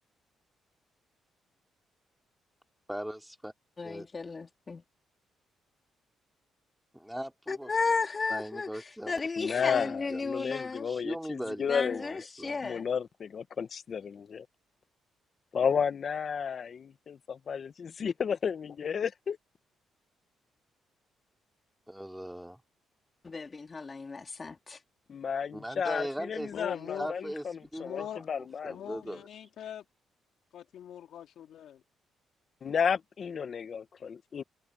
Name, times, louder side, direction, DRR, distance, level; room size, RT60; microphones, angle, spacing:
voice 1, 2.9-3.5 3.8-4.1 7.0-7.7 8.3-9.2 9.7-12.6 21.9-22.6 25.5-26.5 26.8-27.4 27.7-28.2 28.6-29.2, equal, 5° right, 3.5 m, -39 dB
voice 2, 3.8-4.8 7.5-8.7 9.1-10.9 11.7-12.9 23.2-24.8, left 4 dB, 30° left, 3.1 m, -34 dB
voice 3, 9.4-12.0 12.6-14.5 15.5-19.4 25.1-28.8 32.6-34.4, left 7 dB, 50° left, 1.3 m, -32 dB
voice 4, 26.5-27.2 27.8-28.3 28.7-29.8 30.5-31.8 34.0-34.4, left 10 dB, 70° left, 3.3 m, -42 dB
cardioid pair, 90°, 0 cm